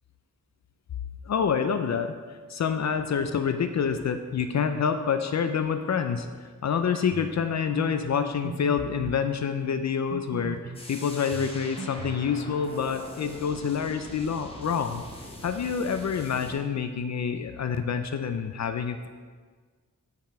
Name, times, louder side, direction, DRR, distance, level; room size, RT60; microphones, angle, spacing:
voice 1, 1.2-6.3 6.6-15.0 15.4-19.1, left 6 dB, 60° left, 8 dB, 0.5 m, -27 dB
sound 1, 7.1-7.4 7.8-7.9 8.4-9.2 10.1-10.9 11.3-12.3, right 5 dB, 30° right, 0.4 m, -38 dB
sound 2, 10.7-16.5, left 1 dB, 15° left, 1.0 m, -43 dB
8.8 x 5.9 x 4.3 m, 1.5 s
wide cardioid pair, 175°, 32 cm